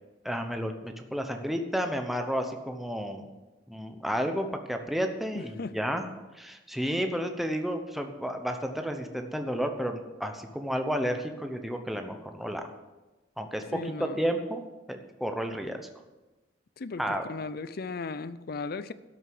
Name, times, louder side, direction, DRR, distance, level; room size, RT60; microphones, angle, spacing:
voice 1, 0.2-3.3 3.7-6.0 6.3-12.6 13.4-14.6 14.9-15.9 17.0-17.2, equal, ahead, 5 dB, 0.9 m, -31 dB
voice 2, 5.3-5.7 13.7-14.2 16.8-18.9, left 4 dB, 55° left, 15 dB, 0.5 m, -36 dB
12.5 x 6.7 x 7.7 m, 1.1 s
head